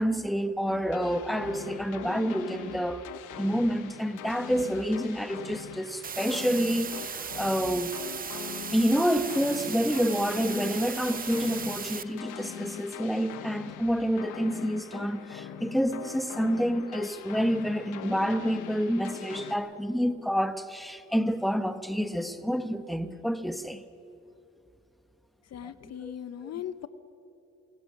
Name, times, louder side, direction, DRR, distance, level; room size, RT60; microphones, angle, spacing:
voice 1, 0.0-3.0 3.4-7.9 8.7-23.8 25.6-26.1 26.5-26.6, equal, ahead, 1.0 m, -28 dB
sound 1, 0.7-19.6, left 9 dB, 90° left, 1.3 m, -42 dB
sound 2, 6.0-12.0, right 6 dB, 30° right, 0.6 m, -37 dB
voice 2, 25.5-26.9, left 10 dB, 55° left, 0.8 m, -38 dB
28.0 x 17.5 x 5.8 m
cardioid pair, 90°, 30 cm